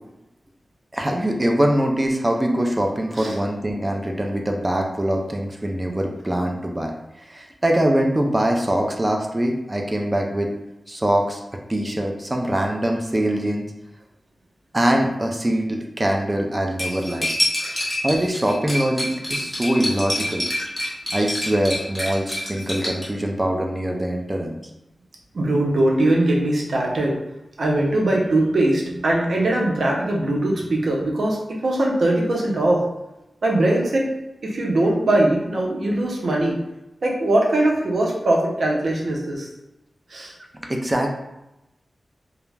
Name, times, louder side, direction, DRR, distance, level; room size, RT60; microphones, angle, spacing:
voice 1, 0.9-6.9 7.2-10.5 10.9-11.4 11.7-13.6 14.7-17.3 18.0-20.5 21.1-24.6 40.6-41.1, right 1 dB, 20° right, 2 dB, 0.3 m, -23 dB
Cutlery silverware, 16.8-23.1, equal, 10° left, 1.0 m, -27 dB
voice 2, 25.3-27.2 27.6-32.8 33.4-34.1 34.4-36.6 37.0-39.5 40.1-40.3, right 1 dB, 70° right, -1 dB, 0.6 m, -21 dB
2.3 x 2.0 x 3.2 m, 0.93 s
wide cardioid pair, 100°, 0 cm